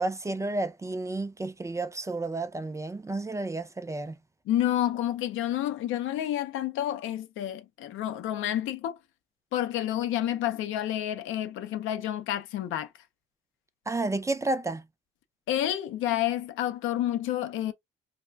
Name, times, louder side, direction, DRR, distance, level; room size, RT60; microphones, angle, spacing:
voice 1, 0.0-4.1 13.9-14.8, right 2 dB, 15° right, 0.3 m, -31 dB
voice 2, 4.5-9.0 9.5-12.9 15.5-17.7, left 12 dB, 85° left, 0.5 m, -29 dB
2.3 x 2.1 x 3.3 m
cardioid pair, 90°, 20 cm